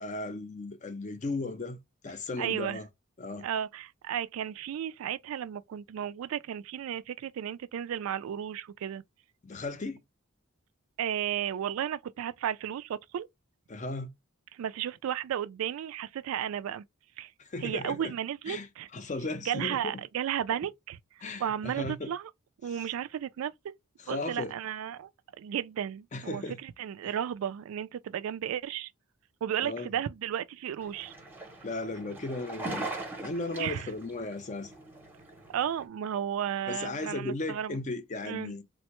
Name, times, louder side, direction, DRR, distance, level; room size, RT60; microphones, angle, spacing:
voice 1, 0.0-1.8 2.0-2.9 3.2-3.5 9.4-10.0 13.7-14.1 17.4-18.1 18.5-19.9 21.2-22.1 24.0-24.5 26.1-26.6 29.6-29.9 31.6-32.9 33.2-34.7 36.7-38.6, left 2 dB, 35° left, 0.5 m, -36 dB
voice 2, 2.4-2.8 3.4-9.0 11.0-13.3 14.5-16.8 17.2-17.3 17.6-18.9 19.5-22.3 22.6-23.7 24.1-25.1 25.4-28.9 29.4-31.1 33.6-33.9 35.5-37.8 38.2-38.5, right 9 dB, 80° right, 0.3 m, -34 dB
sound 1, 30.8-35.8, right 2 dB, 10° right, 0.7 m, -41 dB
3.4 x 2.1 x 2.9 m
head